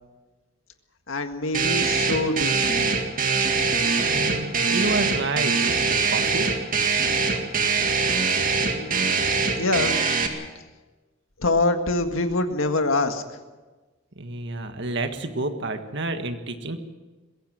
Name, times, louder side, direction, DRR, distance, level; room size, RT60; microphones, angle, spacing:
voice 1, 1.1-3.0 7.3-7.4 8.5-9.2 9.6-10.0 11.4-13.4, left 2 dB, 85° left, 7 dB, 1.8 m, -25 dB
sound 1, 1.5-10.3, right 4 dB, 45° right, 2.1 m, -23 dB
voice 2, 4.1-5.6 6.1-6.5 14.1-16.8, right 2 dB, 60° right, 7 dB, 1.6 m, -29 dB
22.0 x 16.5 x 7.6 m, 1.2 s
head